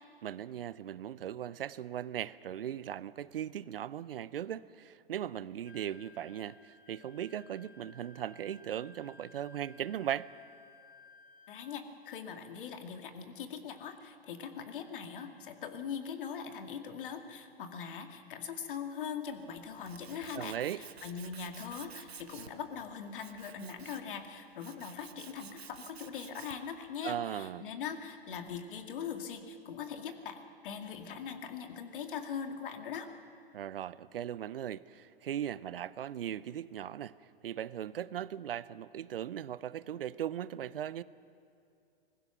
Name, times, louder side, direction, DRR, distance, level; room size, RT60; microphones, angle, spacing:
voice 1, 0.2-10.3 20.4-20.8 27.0-27.6 33.5-37.2 37.4-41.0, right 10 dB, 65° right, 18 dB, 0.7 m, -38 dB
Wind instrument woodwind instrument, 5.6-11.9, left 3 dB, 30° left, 1.2 m, -58 dB
voice 2, 11.5-33.1, left 7 dB, 55° left, 6 dB, 2.3 m, -41 dB
Tools, 19.3-26.8, right 6 dB, 80° right, 1.3 m, -52 dB
25.0 x 20.0 x 6.0 m, 2.5 s
figure-of-eight pair, 115°, 31 cm